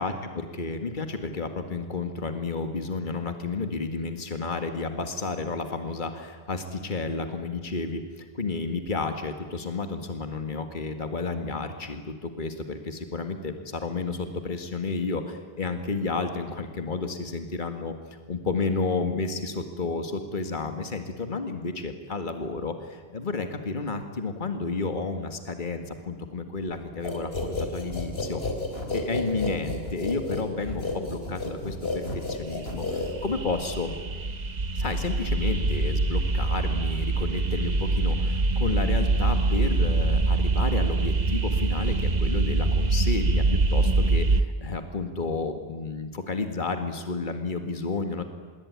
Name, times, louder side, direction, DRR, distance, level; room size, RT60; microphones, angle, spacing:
voice 1, 0.0-17.9 18.3-28.4 28.9-33.9 34.8-48.2, left 3 dB, 50° left, 7 dB, 2.0 m, -31 dB
sound 1, 27.0-33.5, left 2 dB, 75° left, 4.1 m, -31 dB
sound 2, 32.4-44.4, right 3 dB, 45° right, 1.2 m, -24 dB
26.0 x 22.0 x 9.5 m, 1.5 s
omnidirectional pair, 1.0 m